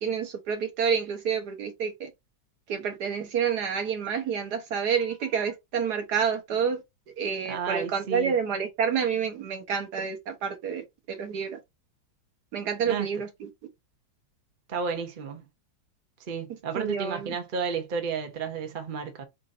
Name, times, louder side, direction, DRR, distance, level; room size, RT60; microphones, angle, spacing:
voice 1, 0.0-2.1 2.7-6.8 7.2-11.6 12.5-13.5 16.7-17.4, right 7 dB, 60° right, 1.4 m, -28 dB
voice 2, 7.5-8.3 12.8-13.1 14.7-15.5 16.3-19.2, right 5 dB, 40° right, 0.7 m, -32 dB
3.9 x 2.5 x 4.0 m
omnidirectional pair, 2.1 m